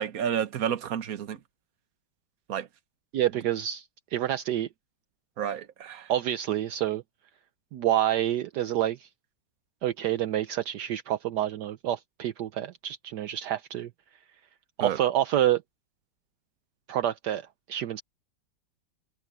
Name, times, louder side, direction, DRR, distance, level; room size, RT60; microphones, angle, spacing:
voice 1, 0.0-1.4 2.5-2.7 5.4-6.1 14.8-15.0, right 9 dB, 55° right, 1.5 m, -30 dB
voice 2, 3.1-4.7 6.1-7.0 7.7-9.1 9.8-13.9 14.8-15.6 16.9-18.0, right 12 dB, 70° right, 1.3 m, -28 dB
omnidirectional pair, 1.9 m